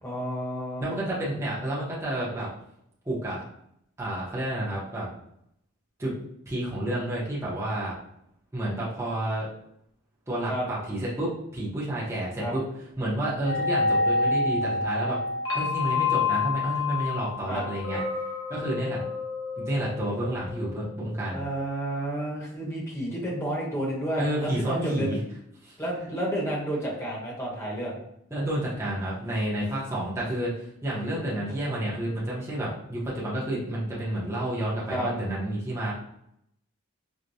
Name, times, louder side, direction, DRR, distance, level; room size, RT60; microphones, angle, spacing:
voice 1, 0.0-0.9 10.5-10.6 12.4-12.5 17.5-17.6 21.3-25.1 25.8-28.0 31.3-31.4 34.9-35.1, right 1 dB, 15° left, -4 dB, 0.9 m, -31 dB
voice 2, 0.8-2.5 3.1-3.4 4.0-5.1 6.0-6.1 6.5-7.9 8.5-9.5 10.3-12.6 13.0-15.2 15.5-18.0 18.5-19.0 19.6-21.4 24.2-25.2 25.6-25.7 28.3-30.5 30.8-35.9, right 1 dB, 15° right, -7 dB, 0.7 m, -30 dB
sound 1, 13.4-21.5, left 4 dB, 85° left, 1.0 m, -28 dB
4.6 x 2.1 x 2.6 m, 0.75 s
head